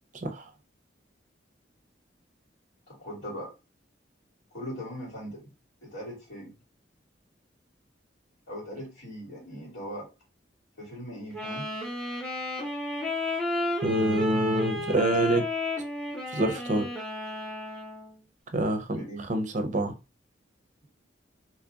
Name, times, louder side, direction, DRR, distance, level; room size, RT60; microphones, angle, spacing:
voice 1, 2.9-3.5 4.5-5.4 5.8-6.5 8.5-10.1 10.8-11.7 18.6-19.2, equal, 85° left, 2.0 m, -40 dB
Wind instrument woodwind instrument, 11.3-18.2, left 1 dB, 5° left, 0.8 m, -32 dB
voice 2, 13.8-15.4 16.3-16.9 18.5-19.9, right 1 dB, 40° right, 0.6 m, -26 dB
3.0 x 2.4 x 3.8 m
head